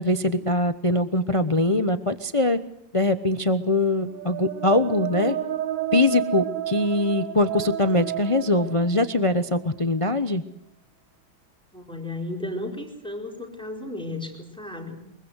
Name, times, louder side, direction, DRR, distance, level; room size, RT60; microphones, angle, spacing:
voice 1, 0.0-2.6 2.9-5.4 5.9-10.4, left 2 dB, 25° left, 11 dB, 0.7 m, -22 dB
sound 1, 3.9-9.7, right 10 dB, 70° right, 2.0 m, -31 dB
voice 2, 11.7-15.0, left 1 dB, ahead, 3 dB, 4.5 m, -34 dB
24.0 x 23.0 x 8.1 m, 0.66 s
omnidirectional pair, 2.0 m